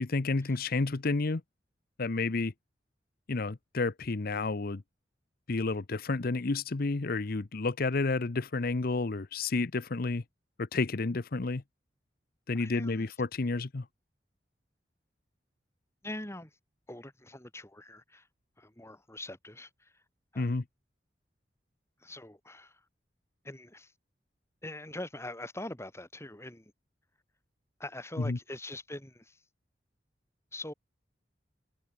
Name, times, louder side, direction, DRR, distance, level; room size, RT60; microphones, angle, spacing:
voice 1, 0.0-1.4 2.0-2.5 3.3-4.8 5.5-10.2 10.6-11.6 12.5-13.8 20.4-20.6 28.2-28.4, left 3 dB, 55° left, 0.8 m, -30 dB
voice 2, 12.5-13.1 16.0-16.5 16.9-18.3 18.6-20.0 20.3-20.5 22.0-22.8 23.4-23.9 24.6-26.7 27.8-29.4 30.5-30.7, left 1 dB, 15° left, 6.4 m, -43 dB
head